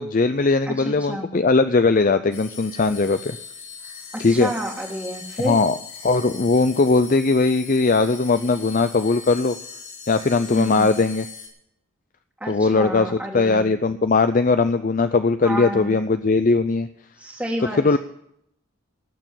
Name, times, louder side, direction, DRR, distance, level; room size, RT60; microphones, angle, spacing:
voice 1, 0.0-3.4 4.2-4.5 5.4-5.7 6.0-9.6 10.1-11.3 12.5-16.9 17.8-18.0, left 3 dB, 40° left, 10 dB, 0.5 m, -19 dB
voice 2, 0.7-1.3 4.1-5.6 10.5-10.9 12.4-13.7 15.4-16.0 17.2-18.0, equal, 5° right, -4 dB, 1.7 m, -30 dB
sound 1, 2.3-11.5, left 6 dB, 80° left, 4.6 m, -40 dB
18.0 x 6.9 x 8.9 m, 0.74 s
head